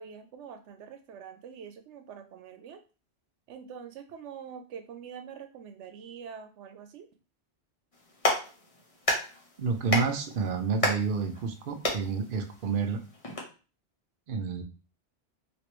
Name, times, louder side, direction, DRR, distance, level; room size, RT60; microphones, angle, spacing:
voice 1, 0.0-2.8 3.5-7.1, right 7 dB, 90° right, 8 dB, 0.9 m, -45 dB
Clapping, 7.9-13.4, left 1 dB, 35° left, 0.8 m, -33 dB
voice 2, 9.6-13.0 14.3-14.6, right 5 dB, 55° right, 6 dB, 0.7 m, -29 dB
3.1 x 2.8 x 3.0 m, 0.34 s
omnidirectional pair, 1.2 m